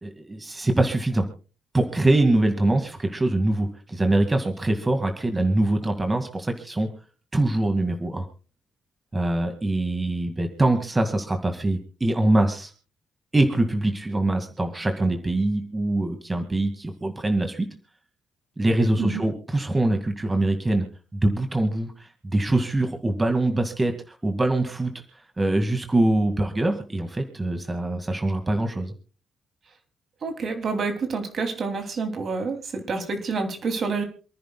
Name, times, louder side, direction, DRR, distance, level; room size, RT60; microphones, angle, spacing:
voice 1, 0.0-1.3 1.7-6.9 7.3-8.3 9.1-12.7 13.3-17.7 18.6-20.9 21.1-21.9 22.2-24.9 25.4-28.9, right 2 dB, 20° right, 5 dB, 2.0 m, -23 dB
voice 2, 30.2-34.0, right 4 dB, 50° right, 5 dB, 2.9 m, -28 dB
28.0 x 10.5 x 2.3 m, 0.36 s
cardioid pair, 90°, 0 cm